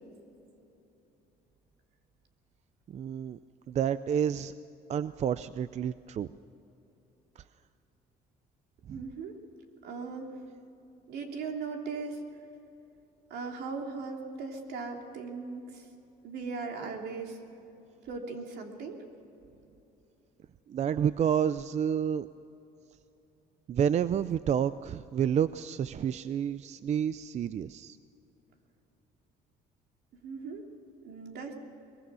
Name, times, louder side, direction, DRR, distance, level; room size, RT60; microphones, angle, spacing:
voice 1, 2.9-3.4 3.7-4.5 4.9-6.3 7.4-7.5 8.9-9.0 20.7-22.3 23.7-28.0, right 8 dB, 40° right, 15 dB, 0.5 m, -29 dB
voice 2, 8.9-9.4 9.8-10.4 11.1-12.2 13.3-15.9 16.2-17.4 18.0-19.0 30.2-30.6 31.0-31.5, right 4 dB, 75° right, 2 dB, 3.1 m, -38 dB
23.0 x 21.5 x 6.3 m, 2.9 s
cardioid pair, 110°, 17 cm